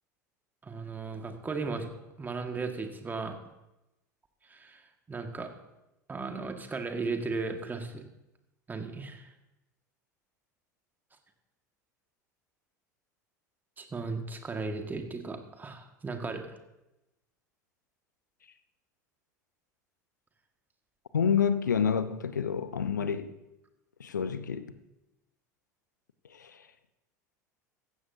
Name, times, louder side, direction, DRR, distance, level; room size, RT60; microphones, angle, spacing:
voice 1, 0.6-1.9 2.2-3.4 4.5-4.8 5.1-5.5 6.1-8.0 8.7-9.3 13.8-16.5, right 4 dB, 20° right, 1.8 m, -36 dB
voice 2, 21.1-23.3 24.0-24.7 26.3-26.7, left 7 dB, 80° left, 0.8 m, -28 dB
16.0 x 14.5 x 2.7 m
figure-of-eight pair, 75°, 10 cm